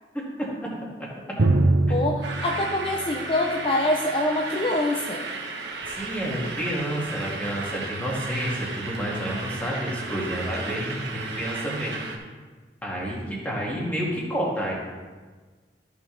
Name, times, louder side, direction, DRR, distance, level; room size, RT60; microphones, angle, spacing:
Drum, 1.4-4.9, right 2 dB, 85° right, 0.8 m, -25 dB
voice 1, 1.9-5.2, left 1 dB, 30° left, 1 dB, 0.6 m, -25 dB
sound 1, 2.2-12.2, right 3 dB, 70° right, 1.3 m, -34 dB
voice 2, 5.9-12.0 12.8-14.7, equal, 10° left, -5 dB, 2.2 m, -29 dB
13.5 x 6.5 x 3.4 m, 1.4 s
head